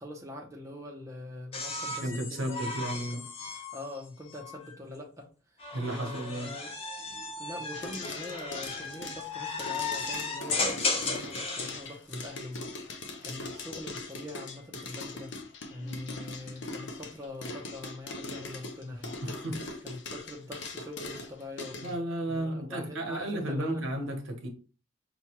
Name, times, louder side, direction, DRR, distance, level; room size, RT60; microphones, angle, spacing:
voice 1, 0.0-5.3 5.8-6.7 7.4-15.3 15.7-19.1 19.8-21.9 22.2-23.9, left 1 dB, 15° right, 0.7 m, -43 dB
sound 1, 1.5-4.8 5.6-11.8 13.3-13.8, left 3 dB, 30° left, 0.7 m, -35 dB
voice 2, 1.9-3.2 5.7-6.5 19.2-19.7 21.8-24.5, right 1 dB, 75° right, 1.1 m, -33 dB
sound 2, 7.7-21.9, left 3 dB, 65° left, 0.7 m, -41 dB
5.7 x 2.3 x 2.9 m
head